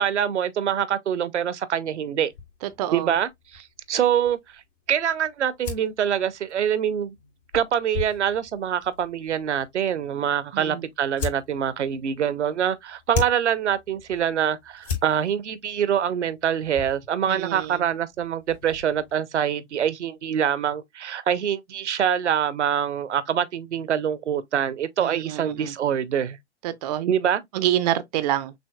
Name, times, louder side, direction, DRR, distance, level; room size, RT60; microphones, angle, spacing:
voice 1, 0.0-2.3 2.9-4.6 4.9-7.1 7.5-26.4 27.1-27.4, right 9 dB, 75° right, 0.7 m, -25 dB
sound 1, 2.3-19.2, left 6 dB, 60° left, 2.7 m, -39 dB
voice 2, 2.8-3.1 10.5-10.8 17.3-17.8 25.0-25.7 26.6-27.1 27.5-28.5, right 12 dB, 35° right, 0.4 m, -27 dB
6.2 x 2.5 x 2.3 m
figure-of-eight pair, 110°, 35 cm